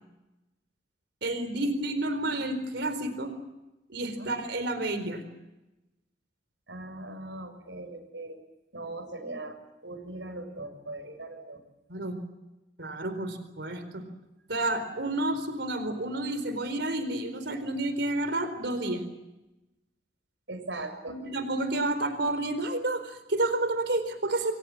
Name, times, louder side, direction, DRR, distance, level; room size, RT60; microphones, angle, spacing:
voice 1, 1.2-3.3 3.9-5.2 11.9-12.2 12.8-14.0 14.5-19.0 21.1-24.5, right 2 dB, 70° right, 9 dB, 4.4 m, -30 dB
voice 2, 6.7-8.4 8.7-11.6 20.5-21.2, right 2 dB, 90° right, 6 dB, 7.1 m, -40 dB
29.5 x 23.0 x 7.4 m, 0.99 s
head